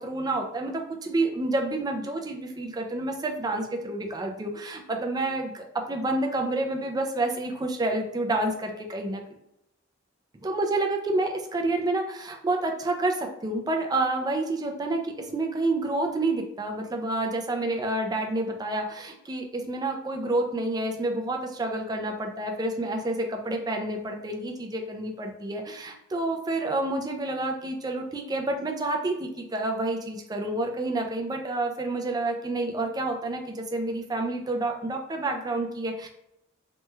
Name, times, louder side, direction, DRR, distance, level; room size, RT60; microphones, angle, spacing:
voice 1, 0.0-9.2 10.4-36.1, right 2 dB, 20° right, 3 dB, 0.4 m, -29 dB
3.0 x 2.2 x 3.2 m, 0.80 s
head